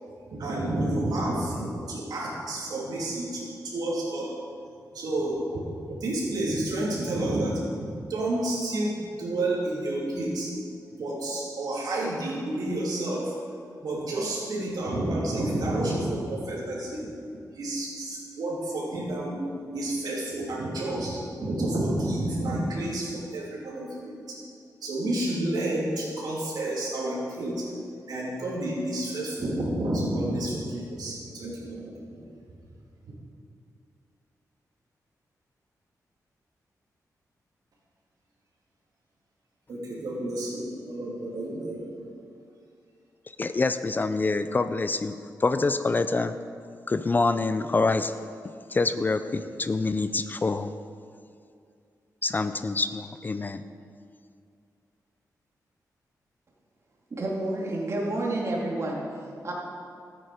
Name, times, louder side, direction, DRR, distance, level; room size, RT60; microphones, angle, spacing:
voice 1, 0.3-4.3 4.9-5.4 5.9-7.6 8.1-10.5 11.0-13.3 13.8-17.1 17.5-19.5 19.7-24.4 24.8-27.7 28.1-31.9 32.1-32.3 39.7-41.8, right 1 dB, 80° right, -4 dB, 3.1 m, -30 dB
voice 2, 43.4-45.1 45.4-46.4 46.9-48.1 48.7-50.7 52.2-53.6, left 3 dB, 30° left, 11 dB, 0.4 m, -26 dB
voice 3, 57.1-59.0 59.4-59.5, right 2 dB, 45° right, -2 dB, 2.4 m, -29 dB
13.0 x 9.2 x 5.1 m, 2.4 s
wide cardioid pair, 120°, 7 cm